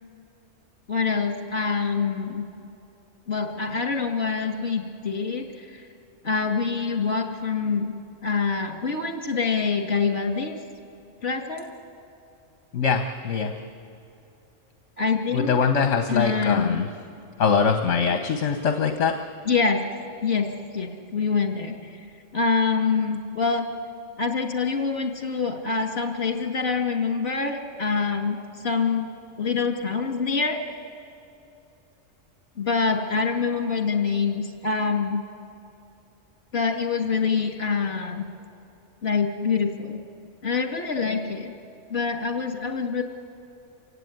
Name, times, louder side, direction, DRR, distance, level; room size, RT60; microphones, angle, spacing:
voice 1, 0.9-2.4 3.3-5.9 6.2-7.9 8.2-10.6 11.2-11.7 15.0-15.6 16.1-16.8 19.5-19.8 20.2-22.0 22.3-23.7 24.2-29.1 29.4-30.8 32.6-35.2 36.5-38.2 39.0-40.0 40.4-41.5 41.9-43.0, left 5 dB, 55° left, 5 dB, 2.5 m, -25 dB
voice 2, 12.7-13.5 15.3-16.9 17.4-19.1, left 5 dB, 70° left, 6 dB, 1.4 m, -23 dB
27.5 x 16.5 x 9.4 m, 2.8 s
omnidirectional pair, 1.3 m